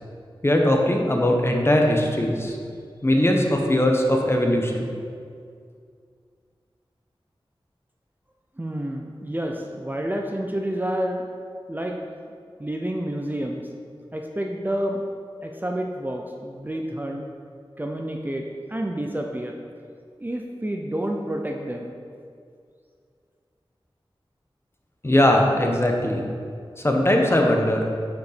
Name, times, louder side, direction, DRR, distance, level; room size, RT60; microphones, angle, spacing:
voice 1, 0.4-2.6 3.0-4.9 25.0-26.2 26.8-27.9, left 1 dB, 25° left, 1 dB, 0.9 m, -20 dB
voice 2, 8.6-11.3 11.7-12.0 12.6-13.6 14.1-15.0 15.4-17.3 17.8-19.6 20.2-22.0, right 1 dB, 20° right, 1 dB, 0.5 m, -29 dB
6.6 x 5.0 x 5.0 m, 2.2 s
wide cardioid pair, 65°, 9 cm